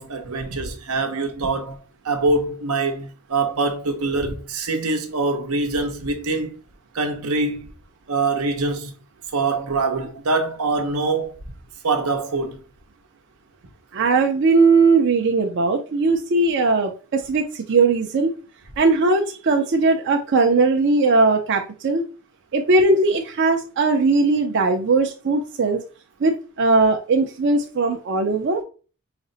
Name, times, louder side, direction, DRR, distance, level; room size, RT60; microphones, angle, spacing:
voice 1, 0.0-1.8 2.0-6.5 6.9-7.7 8.1-8.9 9.3-11.4 11.8-12.6, right 3 dB, 85° right, 0.8 m, -24 dB
voice 2, 13.9-18.3 18.8-22.0 22.5-25.8 26.2-28.6, right 3 dB, 55° right, 0.5 m, -19 dB
5.0 x 2.1 x 3.8 m
head